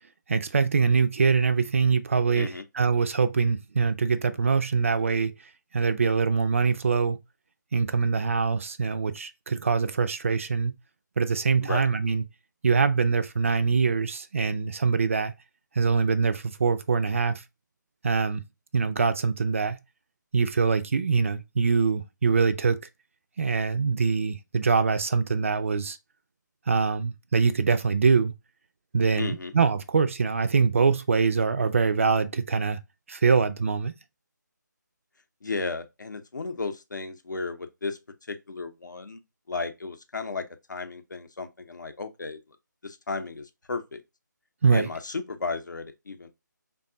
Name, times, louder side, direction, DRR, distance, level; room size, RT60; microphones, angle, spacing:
voice 1, 0.3-2.5 2.8-5.3 5.7-7.2 7.7-10.7 11.2-12.2 12.6-15.3 15.8-17.4 18.0-18.4 18.7-19.8 20.3-22.8 23.4-26.0 26.7-28.3 28.9-32.8 33.1-33.9 44.6-44.9, right 5 dB, 40° right, 0.4 m, -24 dB
voice 2, 2.3-2.6 11.6-11.9 29.2-29.5 35.4-38.0 38.3-39.2 39.5-42.4 42.8-44.0 44.7-46.3, left 4 dB, 70° left, 0.7 m, -34 dB
3.5 x 2.3 x 3.7 m
figure-of-eight pair, 155°, 10 cm